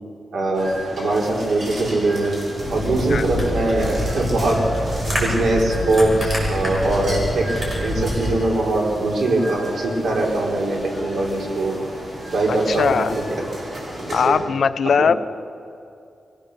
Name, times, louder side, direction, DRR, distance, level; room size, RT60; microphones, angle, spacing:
voice 1, 0.3-2.4 2.7-4.8 5.1-7.5 7.8-11.7 12.3-12.9 13.8-14.4 15.0-15.2, right 2 dB, 80° right, -1 dB, 4.3 m, -22 dB
sound 1, 0.5-14.3, equal, 45° right, 6.7 m, -34 dB
sound 2, 2.6-8.3, equal, 20° right, 6.1 m, -26 dB
voice 2, 12.5-13.2 14.1-15.1, left 6 dB, 60° left, 13 dB, 0.6 m, -19 dB
23.5 x 16.5 x 6.8 m, 2.5 s
wide cardioid pair, 140°, 0 cm